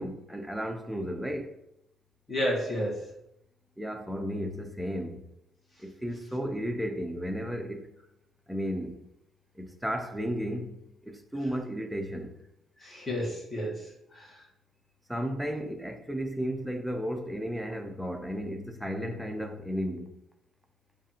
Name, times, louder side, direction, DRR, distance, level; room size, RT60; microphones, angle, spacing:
voice 1, 0.0-1.6 3.8-5.2 5.8-7.9 8.5-9.1 9.6-12.3 15.1-20.2, equal, 5° right, 0.4 m, -34 dB
voice 2, 2.3-3.1 12.8-14.4, equal, 20° left, 1.1 m, -32 dB
5.0 x 2.4 x 2.7 m
cardioid pair, 125°, 0 cm